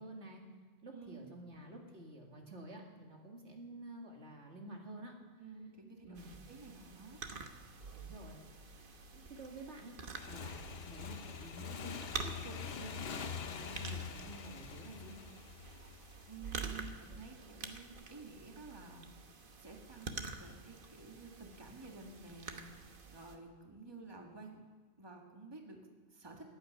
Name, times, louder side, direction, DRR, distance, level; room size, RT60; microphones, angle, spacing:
voice 1, 0.0-5.2 6.1-6.4 7.9-8.4 9.1-10.0 10.3-15.2, right 1 dB, 75° right, 1 dB, 2.3 m, -50 dB
voice 2, 0.9-1.4 5.4-6.2 6.5-7.2 16.3-19.1 19.6-22.6 23.1-24.7 25.0-26.5, right 4 dB, 20° right, 1 dB, 1.7 m, -52 dB
sound 1, 6.2-23.4, right 4 dB, 50° right, 1.2 m, -48 dB
Motorcycle / Engine, 10.2-16.5, left 6 dB, 60° left, 1.0 m, -44 dB
15.0 x 8.2 x 9.7 m, 1.4 s
omnidirectional pair, 1.2 m